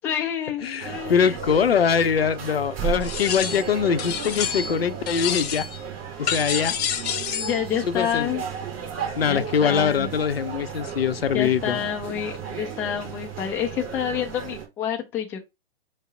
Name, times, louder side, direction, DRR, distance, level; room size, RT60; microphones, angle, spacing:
voice 1, 0.0-1.4 1.7-1.8 6.2-6.4 7.3-8.4 9.3-10.1 11.3-15.4, left 9 dB, 10° left, 0.3 m, -28 dB
voice 2, 0.6-5.7 6.2-6.8 7.8-8.3 9.2-11.8, left 7 dB, 85° left, 0.6 m, -23 dB
sound 1, 0.8-14.7, right 8 dB, 30° right, 1.5 m, -34 dB
sound 2, 3.0-3.7 4.0-4.8 5.1-5.8 6.3-7.6, left 8 dB, 45° left, 0.7 m, -28 dB
5.2 x 2.0 x 4.8 m
hypercardioid pair, 125°, 29 cm